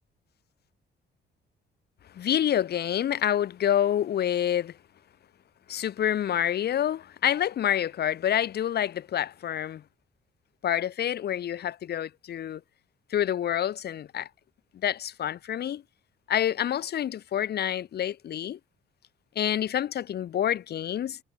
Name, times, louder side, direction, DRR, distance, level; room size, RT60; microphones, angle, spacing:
voice 1, 2.1-4.8 5.7-9.8 10.6-12.6 13.1-14.3 14.8-15.8 16.3-18.6 19.4-21.2, left 10 dB, 55° left, 0.7 m, -27 dB
cardioid pair, 90°, 20 cm